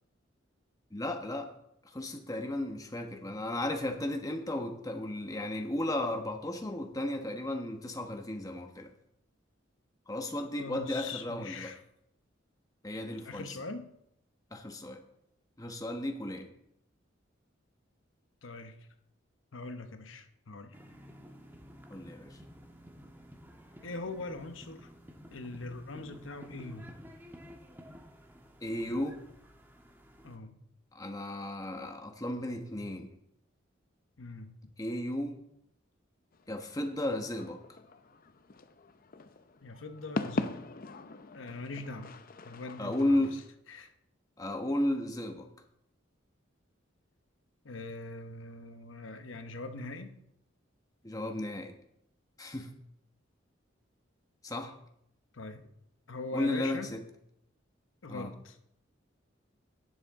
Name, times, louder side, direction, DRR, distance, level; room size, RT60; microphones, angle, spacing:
voice 1, 0.9-1.5 1.9-8.9 10.1-11.7 12.8-13.6 14.5-15.0 15.6-16.5 21.9-22.4 28.6-29.2 30.9-33.1 34.8-35.4 36.5-37.6 42.8-43.4 44.4-45.5 51.0-51.7 52.4-52.7 54.4-54.7 56.3-57.0 58.1-58.3, left 1 dB, 20° left, 4 dB, 1.1 m, -34 dB
voice 2, 10.6-11.8 13.2-13.9 18.4-18.8 19.5-20.8 23.8-24.9 25.3-26.9 30.2-30.6 34.2-34.7 39.6-40.6 41.3-43.4 43.7-43.9 47.6-50.2 55.3-55.7 56.1-56.9 58.0-58.6, left 3 dB, 85° left, 8 dB, 0.9 m, -42 dB
sound 1, 20.7-30.4, equal, 10° right, 1.3 m, -52 dB
sound 2, 36.3-43.5, left 2 dB, 50° left, 0.6 m, -41 dB
17.5 x 7.2 x 3.6 m, 0.76 s
head